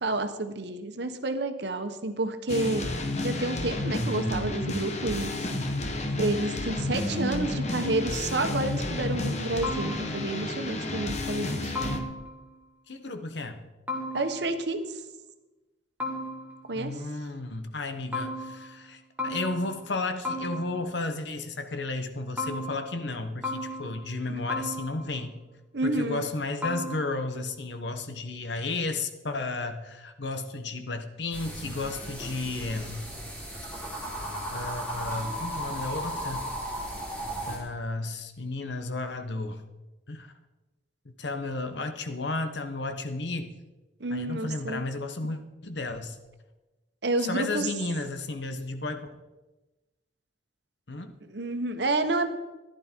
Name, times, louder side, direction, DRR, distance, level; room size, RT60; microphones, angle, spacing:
voice 1, 0.0-2.9 3.2-5.5 6.2-11.7 14.1-15.0 16.7-17.0 25.7-26.3 44.0-44.9 47.0-47.7 51.2-52.3, right 2 dB, 65° right, 7 dB, 1.2 m, -30 dB
sound 1, 2.5-12.0, left 2 dB, 35° left, 1.2 m, -31 dB
sound 2, 9.6-10.4 11.8-12.5 13.9-14.7 16.0-16.8 18.1-18.9 19.2-20.0 20.2-21.0 22.4-23.2 23.4-24.2 24.5-25.3 26.6-27.2, left 1 dB, 10° right, 1.7 m, -35 dB
voice 2, 12.9-13.6 16.7-25.4 25.8-33.0 34.5-36.5 37.4-39.6 40.1-40.3 41.2-43.5 44.1-46.2 47.2-49.1 50.9-51.1, left 2 dB, 70° left, 7 dB, 1.2 m, -33 dB
sound 3, 31.3-37.6, equal, 10° left, 3.2 m, -35 dB
14.5 x 11.0 x 4.5 m, 1.1 s
head